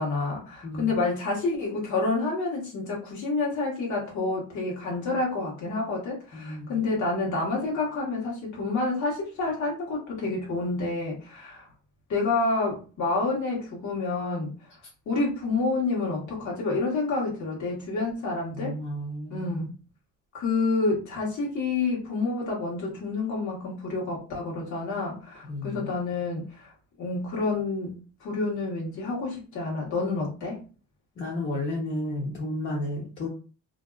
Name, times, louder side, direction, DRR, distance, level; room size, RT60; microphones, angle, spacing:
voice 1, 0.0-11.7 12.1-14.5 15.1-18.7 19.3-19.7 20.3-26.7 27.0-27.9 28.2-30.6, left 3 dB, 70° left, -4 dB, 1.2 m, -28 dB
voice 2, 6.3-6.7 14.8-14.9 18.5-19.7 25.4-25.9 31.2-33.3, left 1 dB, 40° left, -4 dB, 0.8 m, -32 dB
2.6 x 2.3 x 2.3 m, 0.36 s
cardioid pair, 90°, 30 cm